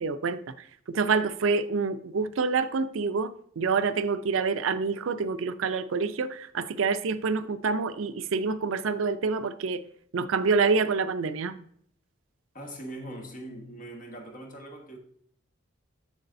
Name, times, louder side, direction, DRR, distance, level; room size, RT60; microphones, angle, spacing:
voice 1, 0.0-0.4 0.9-9.8 10.1-11.6, right 4 dB, 75° right, 0.4 m, -27 dB
voice 2, 12.5-15.0, right 1 dB, 40° left, 1.4 m, -41 dB
8.0 x 6.7 x 2.6 m
head